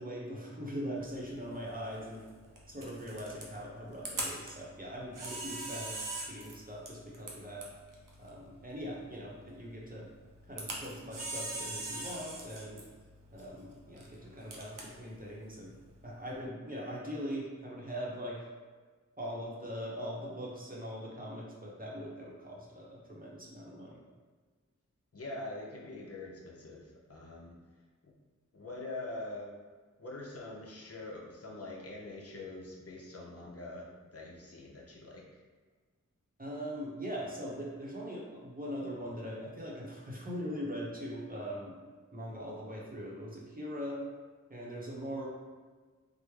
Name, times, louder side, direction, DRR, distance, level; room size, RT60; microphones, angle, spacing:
voice 1, 0.0-2.2 2.7-6.0 6.3-7.7 8.2-10.1 10.5-12.8 13.3-15.7 16.0-18.5 19.2-24.0 36.4-41.8 42.1-44.0 44.5-45.3, equal, 30° right, -5 dB, 0.8 m, -41 dB
Camera, 1.0-16.4, right 2 dB, 80° right, 0.6 m, -44 dB
voice 2, 25.1-27.6 28.0-28.1 28.5-29.5 30.0-35.4, left 2 dB, 50° left, -3 dB, 0.6 m, -44 dB
3.5 x 2.1 x 3.1 m, 1.4 s
wide cardioid pair, 45°, 31 cm